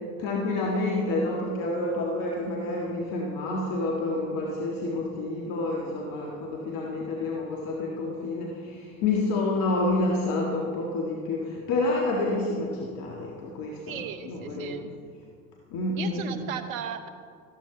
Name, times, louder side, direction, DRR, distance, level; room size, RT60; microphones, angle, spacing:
voice 1, 0.2-14.9 15.7-16.4, left 2 dB, 55° left, -2 dB, 1.8 m, -29 dB
voice 2, 13.9-14.8 16.0-17.1, right 8 dB, 80° right, 9 dB, 1.1 m, -36 dB
13.5 x 13.0 x 3.9 m, 2.2 s
hypercardioid pair, 70°, 41 cm